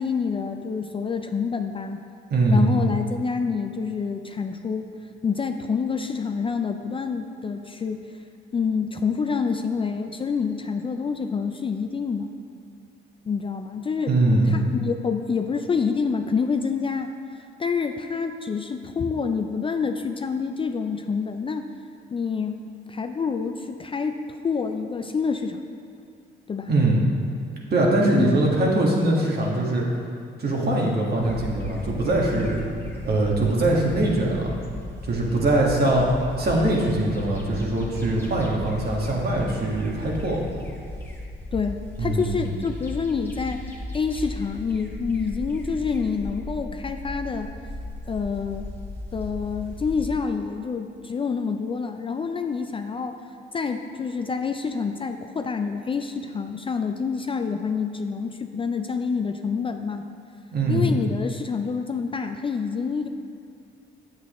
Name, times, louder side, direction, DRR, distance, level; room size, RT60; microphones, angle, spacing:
voice 1, 0.0-2.0 2.5-4.9 5.2-8.1 8.5-12.3 13.3-14.1 14.5-17.1 17.6-21.7 22.1-25.6 26.5-26.7 28.1-28.4 41.5-47.5 48.1-48.7 49.1-53.2 53.5-60.0 60.7-63.1, left 5 dB, 25° left, 6 dB, 0.3 m, -27 dB
voice 2, 2.3-2.7 14.1-14.6 26.7-27.0 27.7-29.8 30.4-32.6 33.0-34.5 35.0-36.1 36.4-40.5 42.0-42.5 60.5-60.9, right 2 dB, 55° right, -2 dB, 1.5 m, -22 dB
sound 1, 31.2-50.1, left 1 dB, 10° left, 1.1 m, -36 dB
8.1 x 7.6 x 3.1 m, 2.4 s
cardioid pair, 90°, 20 cm